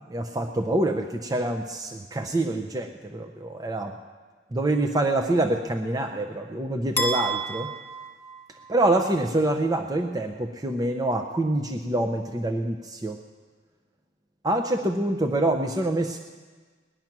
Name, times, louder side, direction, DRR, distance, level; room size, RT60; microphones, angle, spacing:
voice 1, 0.0-4.0 4.5-7.7 8.7-13.2 14.4-16.2, right 1 dB, 20° right, 4 dB, 0.6 m, -26 dB
sound 1, 7.0-9.1, right 3 dB, 10° left, 1.0 m, -31 dB
19.5 x 10.5 x 6.0 m, 1.4 s
head